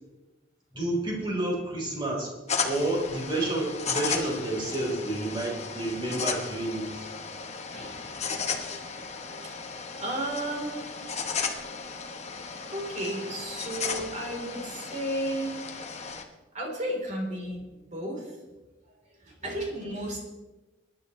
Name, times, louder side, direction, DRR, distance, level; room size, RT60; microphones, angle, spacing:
voice 1, 0.7-2.3 2.6-7.1, right 1 dB, 25° right, -3 dB, 4.3 m, -30 dB
sound 1, 2.5-16.2, left 5 dB, 35° left, 1.2 m, -35 dB
voice 2, 7.7-8.6 9.3-9.6 9.9-12.0 12.7-15.6 16.5-18.4 19.1-20.2, right 1 dB, 40° right, -1 dB, 3.9 m, -34 dB
22.0 x 11.0 x 3.3 m, 1.1 s
head